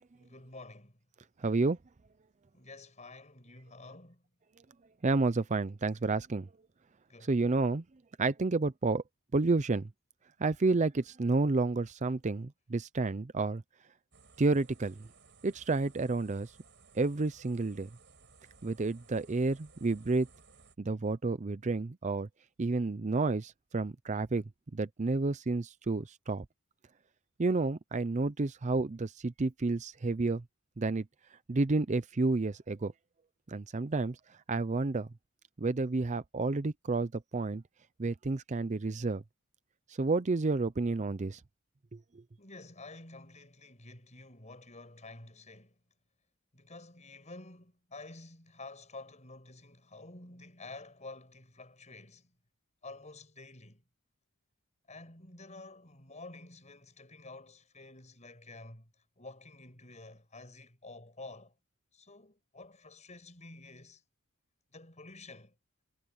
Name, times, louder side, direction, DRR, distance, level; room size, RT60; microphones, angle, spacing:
voice 1, 0.1-1.0 2.5-4.2 7.1-7.3 42.4-45.7 46.5-52.3 52.8-53.8 54.9-58.9 59.2-61.5 61.9-64.0 64.7-65.5, left 2 dB, 35° left, 6.4 m, -50 dB
voice 2, 1.4-1.8 5.0-6.5 7.2-7.8 8.2-9.0 9.3-9.9 10.4-13.6 14.4-15.1 15.4-16.5 16.9-17.9 18.6-20.3 20.8-22.3 22.6-24.4 24.7-26.4 27.4-30.4 30.8-31.1 31.5-32.9 33.5-35.1 35.6-37.6 38.0-39.2 39.9-41.4 41.9-42.0, right 3 dB, 35° right, 0.5 m, -30 dB
sound 1, 14.1-20.8, right 4 dB, 55° right, 7.5 m, -60 dB
head